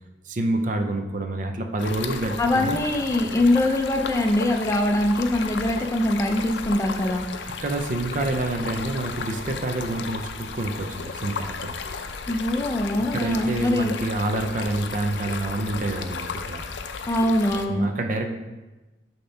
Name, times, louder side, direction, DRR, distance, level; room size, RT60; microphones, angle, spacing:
voice 1, 0.3-2.8 7.6-11.8 13.0-16.6 17.7-18.3, right 2 dB, 45° right, 5 dB, 0.5 m, -27 dB
Stream, 1.8-17.7, left 5 dB, 80° left, 0.4 m, -34 dB
voice 2, 2.4-7.2 12.3-13.9 17.1-17.8, left 1 dB, 15° left, 4 dB, 0.4 m, -23 dB
6.7 x 2.9 x 5.5 m, 1.1 s
head